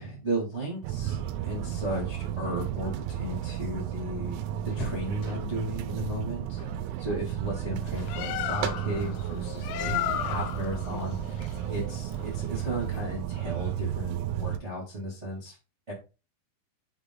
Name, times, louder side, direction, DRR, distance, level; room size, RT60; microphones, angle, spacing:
voice 1, 0.0-4.5 4.7-6.6 7.0-15.5 15.9-16.0, right 1 dB, 40° right, -5 dB, 0.9 m, -35 dB
sound 1, 0.8-14.6, right 11 dB, 80° right, 2.8 m, -33 dB
sound 2, 3.1-5.8 6.5-6.9 7.2-7.4 7.9-8.2 9.1-10.5 12.3-12.4 12.8-12.9 14.0-14.5 14.8-14.9 15.2-15.4, left 1 dB, 45° left, 2.3 m, -43 dB
Bird, 7.8-13.0, left 11 dB, 90° left, 3.1 m, -35 dB
7.3 x 3.9 x 3.8 m, 0.32 s
omnidirectional pair, 5.5 m